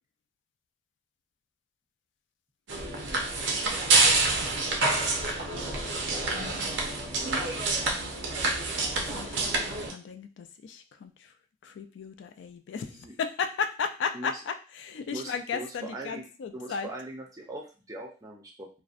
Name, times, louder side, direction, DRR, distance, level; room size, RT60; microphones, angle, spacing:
sound 1, 2.7-9.9, right 3 dB, 85° right, 0.6 m, -27 dB
voice 1, 8.7-11.3 11.6-16.9, left 6 dB, 80° left, 8 dB, 0.3 m, -35 dB
voice 2, 12.8-13.1 14.1-14.3 15.1-16.3 16.5-18.7, right 2 dB, 20° right, 0 dB, 0.4 m, -40 dB
2.5 x 2.1 x 2.4 m, 0.34 s
head